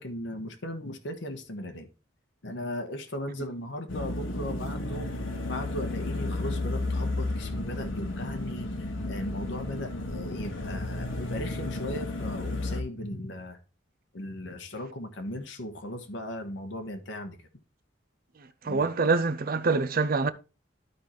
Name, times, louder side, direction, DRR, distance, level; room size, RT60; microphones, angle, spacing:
voice 1, 0.0-1.9 2.4-5.1 5.5-13.6 14.1-17.4 18.6-19.1, left 1 dB, 70° left, 1.2 m, -37 dB
sound 1, 3.9-12.8, left 2 dB, 90° left, 1.2 m, -33 dB
voice 2, 18.6-20.3, right 4 dB, 50° right, 0.6 m, -25 dB
12.5 x 4.4 x 3.2 m
head